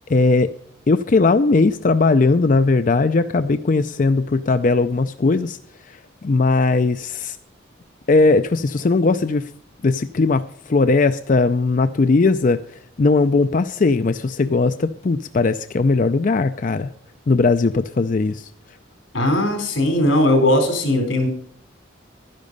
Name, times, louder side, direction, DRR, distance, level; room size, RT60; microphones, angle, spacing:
voice 1, 0.1-0.5 0.9-5.6 5.9-7.4 8.1-9.5 9.8-12.6 13.0-16.9 17.3-18.5, left 3 dB, 40° left, 10 dB, 0.4 m, -18 dB
voice 2, 19.1-21.3, left 1 dB, 85° left, 4 dB, 3.9 m, -18 dB
12.0 x 10.5 x 5.3 m, 0.63 s
head